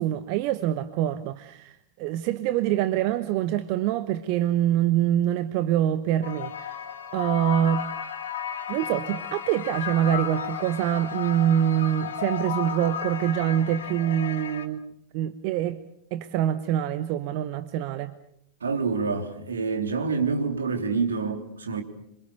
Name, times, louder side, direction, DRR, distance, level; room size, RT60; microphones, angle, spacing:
voice 1, 0.0-6.8 7.1-7.8 8.7-14.8 15.1-15.8 16.1-18.1, right 11 dB, 45° right, 1.1 m, -25 dB
sound 1, 6.2-14.7, left 8 dB, 65° left, 2.9 m, -34 dB
voice 2, 18.6-21.8, right 4 dB, 70° right, 3.3 m, -27 dB
27.5 x 25.0 x 6.8 m
figure-of-eight pair, 90°, 0 cm